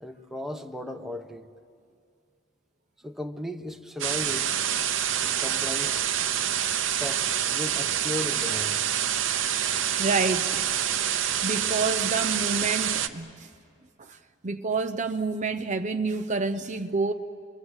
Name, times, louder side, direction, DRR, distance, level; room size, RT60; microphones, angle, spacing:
voice 1, 0.0-1.5 3.0-4.6 5.2-6.1 7.0-8.8, left 1 dB, ahead, 1.0 m, -36 dB
sound 1, 4.0-13.1, right 9 dB, 85° right, 0.9 m, -27 dB
voice 2, 10.0-10.7 11.4-13.5 14.0-14.2 14.4-17.1, right 4 dB, 40° right, 0.7 m, -28 dB
29.5 x 22.5 x 8.1 m
head